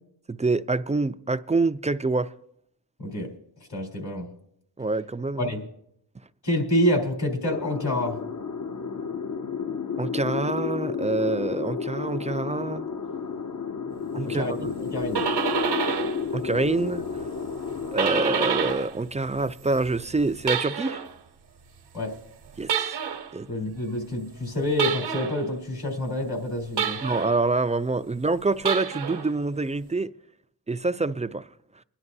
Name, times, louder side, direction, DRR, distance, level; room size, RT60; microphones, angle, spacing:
voice 1, 0.3-2.3 4.8-5.5 10.0-12.8 14.1-14.7 16.3-17.0 17.9-21.0 22.6-22.9 23.3-23.5 27.0-30.1 30.7-31.5, right 3 dB, 20° right, 0.4 m, -26 dB
voice 2, 3.0-3.3 3.7-4.3 5.4-5.6 6.4-8.2 14.2-15.2 21.9-22.1 23.5-27.0, equal, 65° left, 3.6 m, -27 dB
sound 1, 7.4-18.7, left 6 dB, 50° left, 0.8 m, -31 dB
sound 2, 14.8-16.3 16.6-19.0 19.3-21.2 22.6-23.4 24.8-25.4 26.8-27.4 28.5-29.3, right 7 dB, 70° right, 1.0 m, -28 dB
22.0 x 11.0 x 2.7 m
cardioid pair, 75°, 40 cm